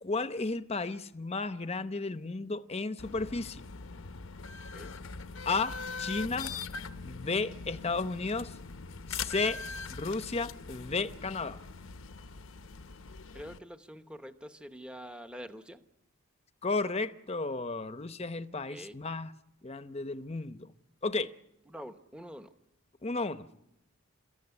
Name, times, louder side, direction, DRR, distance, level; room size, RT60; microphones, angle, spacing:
voice 1, 0.0-3.6 5.5-6.5 7.0-8.6 9.1-9.6 9.9-11.6 16.6-19.3 19.6-20.7 21.0-21.3 23.0-23.5, left 3 dB, 30° left, 0.8 m, -33 dB
sound 1, 3.0-13.6, left 5 dB, 70° left, 0.9 m, -42 dB
voice 2, 13.3-15.8 18.7-18.9 21.7-22.5, equal, 5° right, 0.9 m, -45 dB
30.0 x 14.5 x 9.8 m
head